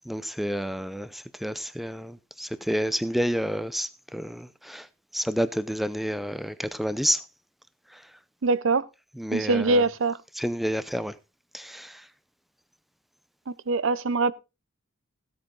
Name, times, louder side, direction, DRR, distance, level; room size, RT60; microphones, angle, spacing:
voice 1, 0.1-4.9 5.1-7.2 9.2-9.8 10.4-11.1 11.5-12.0, equal, ahead, 0.5 m, -29 dB
voice 2, 8.4-8.9 9.3-10.2 13.7-14.3, right 3 dB, 60° right, 0.6 m, -23 dB
15.5 x 8.6 x 3.8 m
head